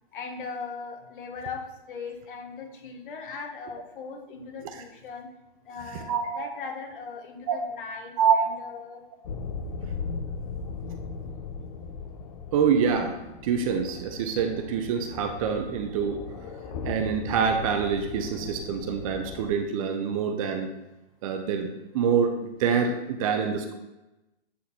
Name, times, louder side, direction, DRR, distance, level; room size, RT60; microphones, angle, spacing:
voice 1, 0.1-5.3 5.7-9.0, left 5 dB, 50° left, 2 dB, 1.9 m, -39 dB
voice 2, 5.9-6.5 7.5-7.6 8.2-8.4 12.5-16.2 16.8-20.7 21.2-21.7 21.9-23.7, right 6 dB, 35° right, 6 dB, 0.7 m, -26 dB
sound 1, 9.2-19.5, left 4 dB, 35° left, 0.9 m, -38 dB
8.4 x 3.9 x 4.3 m, 0.99 s
hypercardioid pair, 150°, 33 cm